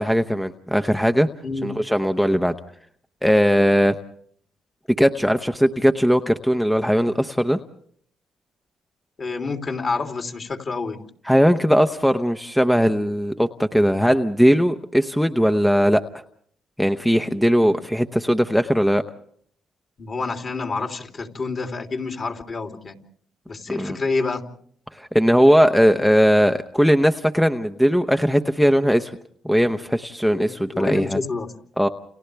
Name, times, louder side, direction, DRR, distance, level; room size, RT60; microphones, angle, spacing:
voice 1, 0.0-1.3 1.6-2.5 3.2-3.9 5.0-7.6 11.3-16.0 16.8-19.0 23.7-24.0 25.0-29.1 29.4-31.2 31.8-31.9, equal, 5° left, 8 dB, 0.8 m, -19 dB
voice 2, 9.2-11.0 20.0-23.0 23.5-24.4 30.3-31.5, left 4 dB, 45° left, 4 dB, 3.1 m, -28 dB
30.0 x 29.5 x 3.4 m, 0.62 s
cardioid pair, 90°, 0 cm